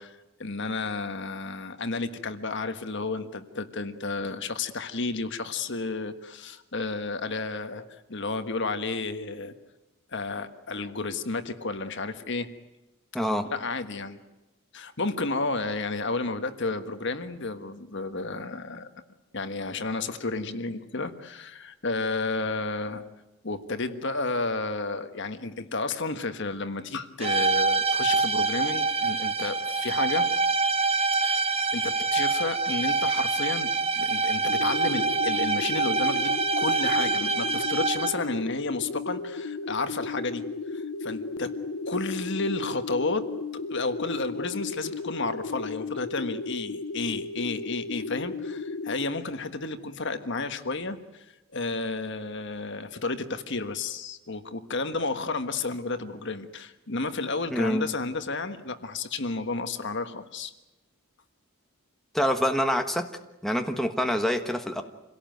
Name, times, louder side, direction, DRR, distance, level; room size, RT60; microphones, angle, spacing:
voice 1, 0.0-7.8 8.1-9.5 10.1-12.5 13.4-14.2 14.7-18.9 19.3-23.0 23.4-30.3 31.2-31.4 31.7-41.5 41.9-51.2 51.5-60.5, left 3 dB, 55° left, 9 dB, 1.4 m, -32 dB
voice 2, 13.1-13.4 57.5-57.9 62.1-63.1 63.4-64.8, equal, ahead, 4 dB, 1.3 m, -26 dB
sound 1, 27.2-38.3, right 4 dB, 25° right, 1.0 m, -25 dB
sound 2, 34.5-49.1, left 3 dB, 80° left, 0.8 m, -35 dB
27.0 x 17.5 x 9.2 m, 1.0 s
head